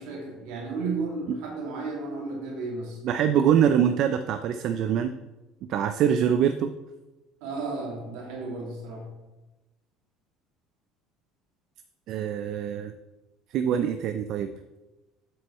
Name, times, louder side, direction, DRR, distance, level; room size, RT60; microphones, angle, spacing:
voice 1, 0.0-3.0 7.4-9.1, right 3 dB, 80° right, -1 dB, 2.2 m, -33 dB
voice 2, 3.0-5.1 5.7-6.7 12.1-12.9 13.5-14.5, right 9 dB, 60° right, 9 dB, 0.4 m, -24 dB
7.8 x 6.1 x 3.1 m, 1.1 s
supercardioid pair, 95°, 0 cm